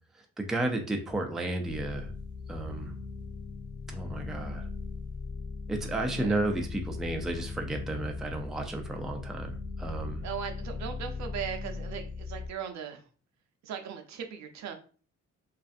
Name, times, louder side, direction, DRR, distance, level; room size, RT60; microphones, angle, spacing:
voice 1, 0.1-2.1 2.5-2.9 3.9-4.7 5.7-10.2, right 2 dB, ahead, 2 dB, 0.3 m, -33 dB
sound 1, 1.7-12.5, left 4 dB, 75° left, 0.6 m, -39 dB
voice 2, 5.8-6.6 10.2-13.1 13.6-14.7, right 8 dB, 65° right, 6 dB, 0.5 m, -39 dB
2.5 x 2.4 x 2.4 m, 0.40 s
cardioid pair, 90°, 30 cm